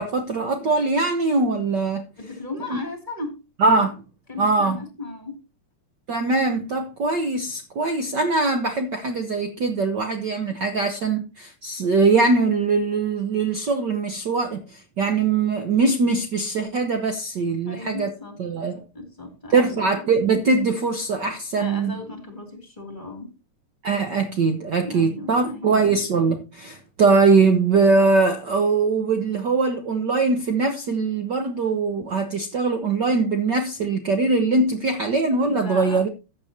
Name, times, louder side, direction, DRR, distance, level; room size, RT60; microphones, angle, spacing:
voice 1, 0.0-2.1 2.7-2.8 3.6-4.0 4.4-4.8 6.1-18.1 18.4-18.8 19.5-22.0 23.8-36.1, right 3 dB, 75° right, 1.0 m, -22 dB
voice 2, 2.2-3.4 4.3-5.4 17.6-18.4 18.9-19.8 21.6-23.3 24.8-25.7 35.4-36.1, left 2 dB, 15° left, 2.5 m, -36 dB
14.5 x 8.5 x 2.8 m
omnidirectional pair, 3.4 m